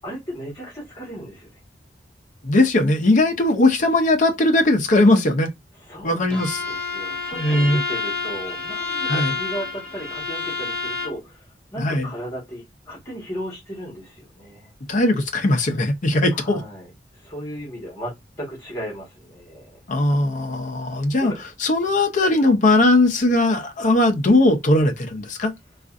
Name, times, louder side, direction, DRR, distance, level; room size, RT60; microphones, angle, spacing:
voice 1, 0.0-1.6 5.8-14.7 16.3-19.8 21.2-21.4, equal, 20° left, 1.4 m, -36 dB
voice 2, 2.4-5.5 6.0-6.6 7.3-7.8 9.1-9.4 11.8-12.1 14.9-16.6 19.9-21.3 21.6-25.5, left 2 dB, 45° left, 0.6 m, -19 dB
Bowed string instrument, 6.3-11.2, left 4 dB, 5° left, 0.8 m, -29 dB
3.7 x 2.4 x 2.5 m
head